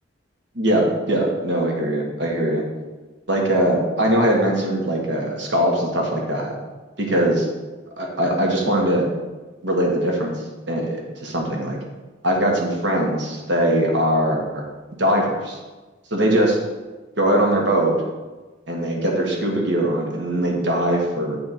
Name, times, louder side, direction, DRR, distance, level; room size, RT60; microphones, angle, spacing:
voice 1, 0.5-2.6 3.3-6.5 7.0-7.5 8.0-9.1 9.6-10.3 10.7-11.8 12.2-14.6 15.0-15.6 16.1-16.6 17.2-18.0 18.7-21.4, right 1 dB, 65° right, 0 dB, 1.5 m, -21 dB
8.8 x 4.2 x 4.2 m, 1.2 s
head